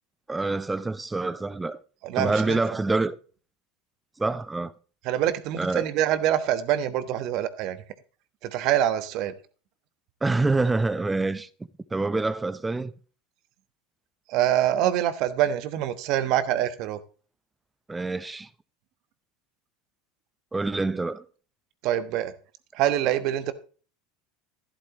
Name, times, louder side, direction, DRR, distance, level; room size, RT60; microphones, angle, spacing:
voice 1, 0.3-1.8 2.2-3.2 4.2-4.7 5.6-5.9 10.2-11.5 11.9-12.9 17.9-18.5 20.5-21.2, right 3 dB, 10° right, 0.7 m, -26 dB
voice 2, 2.0-2.6 5.0-7.8 8.4-9.3 14.3-17.0 21.8-22.3 22.7-23.5, right 11 dB, 55° right, 1.2 m, -25 dB
11.5 x 11.5 x 3.0 m
hypercardioid pair, 95°, 0 cm